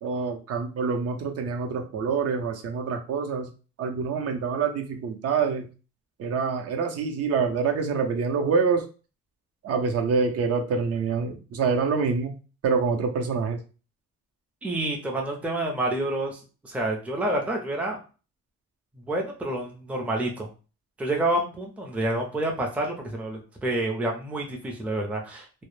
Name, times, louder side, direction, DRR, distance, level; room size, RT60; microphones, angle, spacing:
voice 1, 0.0-3.5 3.8-5.7 6.2-8.9 9.6-12.4 12.6-13.6, right 5 dB, 55° right, 4 dB, 0.6 m, -26 dB
voice 2, 14.6-16.4 16.6-18.0 19.0-20.5 21.0-25.5, right 1 dB, 5° right, 0 dB, 0.5 m, -28 dB
2.1 x 2.0 x 3.1 m, 0.34 s
cardioid pair, 125°, 29 cm